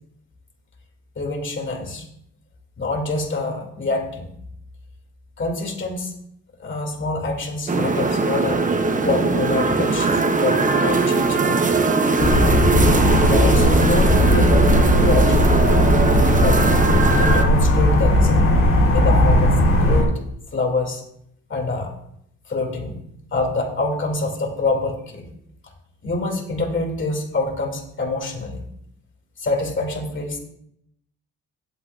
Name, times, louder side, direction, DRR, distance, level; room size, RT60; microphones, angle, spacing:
voice 1, 1.2-2.0 2.8-4.3 5.4-6.1 6.6-8.6 9.0-12.0 13.3-14.6 15.0-15.6 16.4-18.5 18.9-20.2 20.5-21.0 21.5-21.9 22.5-23.0 23.3-25.3 26.0-28.6 29.4-30.4, left 2 dB, 40° left, 2 dB, 2.6 m, -26 dB
sound 1, 7.7-17.4, right 4 dB, 25° right, 0.9 m, -20 dB
sound 2, 12.2-20.0, left 1 dB, 60° left, 3.8 m, -17 dB
16.5 x 8.0 x 2.5 m, 0.72 s
cardioid pair, 90°, 30 cm